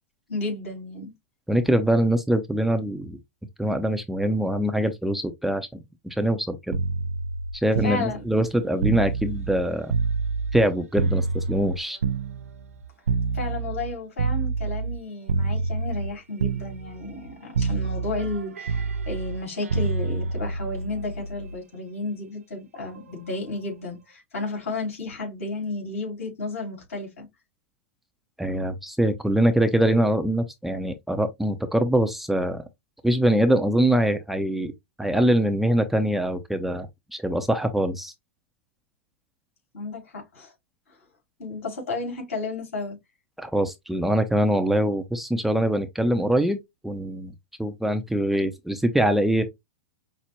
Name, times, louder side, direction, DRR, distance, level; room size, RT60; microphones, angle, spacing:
voice 1, 0.3-1.1 7.8-8.2 13.3-27.3 39.7-40.5 41.4-43.0, left 2 dB, 75° left, 2.8 m, -32 dB
voice 2, 1.5-3.2 3.6-5.7 6.0-6.8 7.6-9.9 10.5-12.0 28.4-32.6 33.0-34.7 35.0-36.9 37.1-38.1 43.4-47.3 47.6-49.4, right 1 dB, 5° right, 0.5 m, -23 dB
sound 1, 6.7-10.7 11.0-15.0 15.3-16.1 16.4-17.3 17.5-21.5 22.8-23.0, right 4 dB, 85° right, 0.4 m, -28 dB
5.6 x 2.1 x 2.9 m
hypercardioid pair, 105°, 7 cm